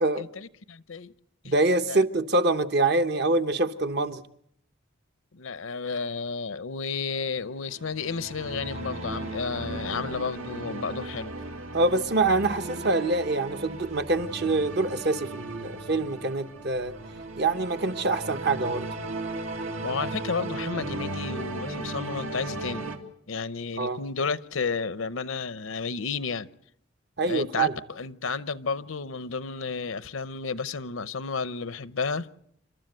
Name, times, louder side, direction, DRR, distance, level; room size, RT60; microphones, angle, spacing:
voice 1, 0.2-1.1 1.4-1.5 1.9-2.0 5.3-11.3 19.8-22.9 23.3-26.5 27.2-32.3, left 5 dB, 85° left, 0.8 m, -32 dB
voice 2, 1.4-4.2 11.7-16.9 17.4-18.9 23.8-24.0 27.2-27.7, right 2 dB, 55° right, 0.9 m, -25 dB
sound 1, 7.5-23.0, right 2 dB, 85° right, 2.3 m, -36 dB
29.0 x 13.0 x 7.9 m
head